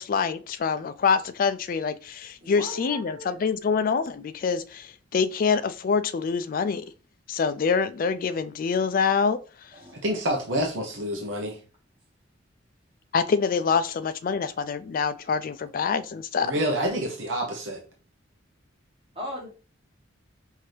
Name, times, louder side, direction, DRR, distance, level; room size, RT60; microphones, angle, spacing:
voice 1, 0.0-6.9 7.3-9.4 13.1-16.5, left 5 dB, 45° left, 0.3 m, -25 dB
voice 2, 2.4-3.3 9.7-10.0 19.1-19.5, equal, 30° right, 1.4 m, -37 dB
voice 3, 10.0-11.6 16.4-17.8, equal, 75° right, 0.9 m, -27 dB
5.8 x 2.7 x 3.2 m
head